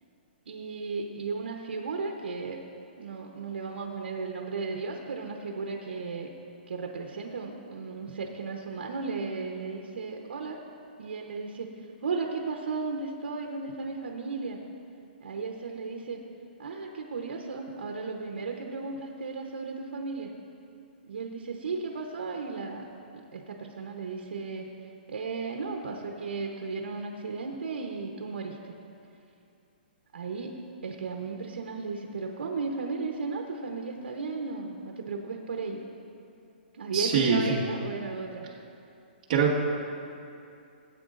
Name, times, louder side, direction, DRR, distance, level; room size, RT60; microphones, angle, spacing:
voice 1, 0.5-2.6 3.0-6.3 6.7-10.6 11.0-11.7 12.0-14.6 15.2-16.2 16.6-20.3 21.0-24.6 25.1-28.6 30.1-30.5 30.8-35.8 36.7-38.4, right 4 dB, 85° right, 2 dB, 0.9 m, -35 dB
voice 2, 36.9-37.6 39.3-39.6, right 5 dB, 35° right, -4 dB, 1.6 m, -23 dB
17.0 x 8.4 x 2.5 m, 2.6 s
hypercardioid pair, 170°, 6 cm